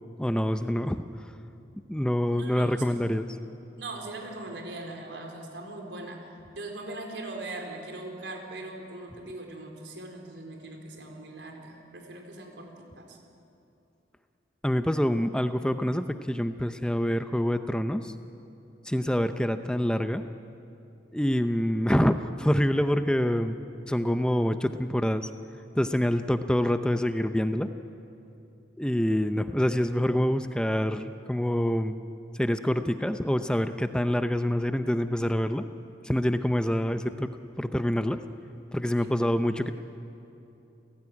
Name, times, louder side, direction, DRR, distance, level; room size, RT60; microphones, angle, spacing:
voice 1, 0.2-1.0 1.9-3.3 14.6-18.1 18.8-20.2 21.1-23.6 23.9-25.3 25.7-27.7 28.8-32.0 32.3-35.6 36.0-37.3 37.6-38.2 38.7-39.7, equal, 5° left, 9 dB, 0.6 m, -26 dB
voice 2, 2.3-3.0 3.8-13.2 39.0-39.2, right 2 dB, 75° right, 2 dB, 4.4 m, -40 dB
29.5 x 17.5 x 9.7 m, 2.8 s
head